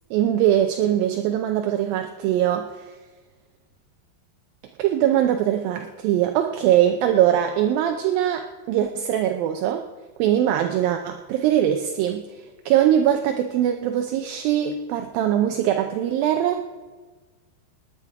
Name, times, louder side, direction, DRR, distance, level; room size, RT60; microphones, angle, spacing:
voice 1, 0.1-2.9 4.8-9.9 10.2-16.6, right 11 dB, 80° right, 5 dB, 2.1 m, -22 dB
18.5 x 10.0 x 4.8 m, 1.4 s
omnidirectional pair, 4.8 m